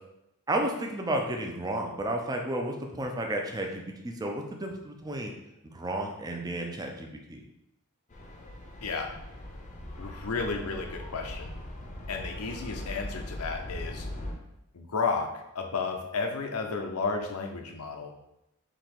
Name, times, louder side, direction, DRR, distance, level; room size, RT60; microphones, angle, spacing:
voice 1, 0.5-5.3 5.7-7.4, right 1 dB, 15° right, 2 dB, 0.5 m, -32 dB
sound 1, 8.1-14.3, left 1 dB, 35° left, 0.6 m, -40 dB
voice 2, 8.8-9.1 10.0-11.6 12.1-14.1 14.7-18.2, left 4 dB, 80° left, 4 dB, 0.6 m, -32 dB
3.8 x 2.9 x 4.4 m, 0.86 s
head